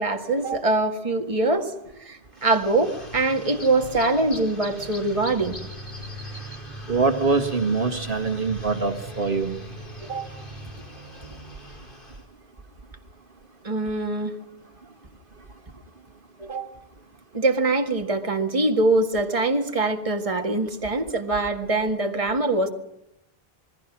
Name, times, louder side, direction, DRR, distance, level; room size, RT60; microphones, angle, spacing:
voice 1, 0.0-1.7 2.0-5.6 10.0-10.3 13.6-14.4 16.4-16.7 17.3-22.7, right 2 dB, 35° right, 4 dB, 1.9 m, -23 dB
sound 1, 2.3-12.2, right 1 dB, 55° left, 5.1 m, -39 dB
voice 2, 6.9-9.6, right 4 dB, 55° right, 7 dB, 2.0 m, -24 dB
27.5 x 21.0 x 6.1 m, 0.81 s
omnidirectional pair, 1.0 m